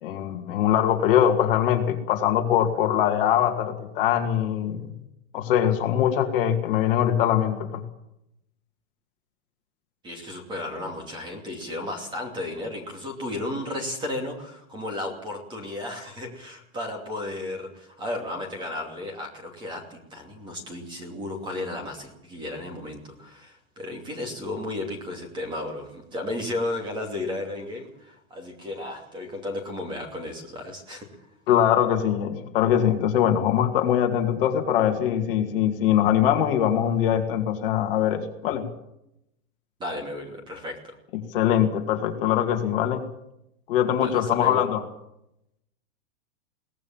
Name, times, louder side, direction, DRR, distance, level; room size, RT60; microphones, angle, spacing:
voice 1, 0.0-4.9 5.3-7.8 31.5-38.6 41.3-43.0 43.7-44.8, left 10 dB, 40° left, 4 dB, 2.4 m, -22 dB
voice 2, 10.0-31.1 39.8-40.9 44.0-44.6, left 2 dB, 10° right, 3 dB, 2.7 m, -34 dB
22.5 x 18.0 x 7.3 m, 0.83 s
supercardioid pair, 175°, 43 cm